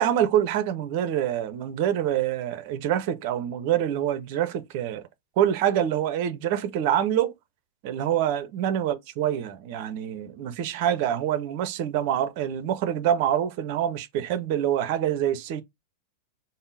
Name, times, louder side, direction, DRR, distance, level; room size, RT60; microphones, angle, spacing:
voice 1, 0.0-5.0 5.4-7.3 7.8-15.6, right 10 dB, 45° right, 0.5 m, -26 dB
3.5 x 2.0 x 3.8 m
figure-of-eight pair, 90°, 0 cm